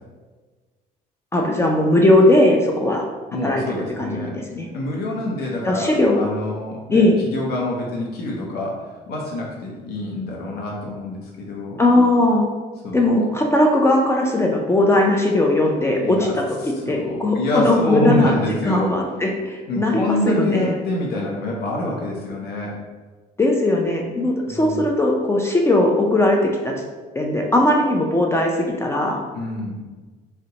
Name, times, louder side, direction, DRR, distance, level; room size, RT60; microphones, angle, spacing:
voice 1, 1.3-3.0 3.4-4.7 5.6-6.2 6.9-7.2 11.8-12.5 12.9-16.4 16.9-18.4 18.6-20.7 23.4-26.7 27.1-29.2, left 1 dB, 15° left, 0 dB, 0.3 m, -18 dB
voice 2, 3.3-4.3 4.7-11.8 12.8-13.0 16.0-18.9 19.7-22.8 24.5-24.8 29.3-29.8, left 1 dB, 70° left, -2 dB, 0.6 m, -26 dB
2.7 x 2.1 x 3.8 m, 1.3 s
cardioid pair, 110°, 17 cm